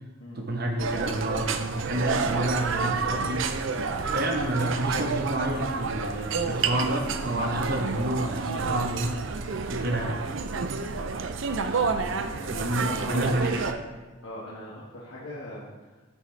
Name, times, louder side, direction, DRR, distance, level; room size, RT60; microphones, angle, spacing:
voice 1, 0.4-3.5 4.1-9.2 9.7-10.2 12.5-13.8, right 1 dB, 45° right, 3 dB, 1.1 m, -29 dB
sound 1, 0.8-13.7, right 4 dB, 65° right, 0.5 m, -29 dB
voice 2, 11.8-13.5 14.2-16.2, left 1 dB, 75° left, -8 dB, 1.7 m, -41 dB
11.0 x 6.3 x 3.3 m, 1.2 s
head